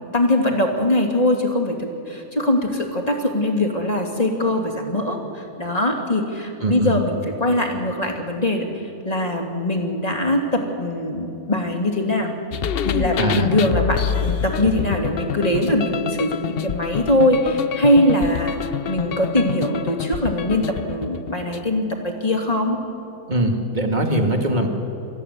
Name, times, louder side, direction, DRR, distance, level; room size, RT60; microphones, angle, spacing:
voice 1, 0.1-8.7 9.0-12.3 12.8-22.8, left 1 dB, 25° left, 3 dB, 2.7 m, -22 dB
voice 2, 6.6-6.9 13.2-13.5 23.3-24.7, right 1 dB, 30° right, 3 dB, 2.3 m, -21 dB
sound 1, 12.5-21.7, left 8 dB, 60° left, 0.6 m, -27 dB
25.5 x 15.0 x 9.5 m, 2.9 s
omnidirectional pair, 1.6 m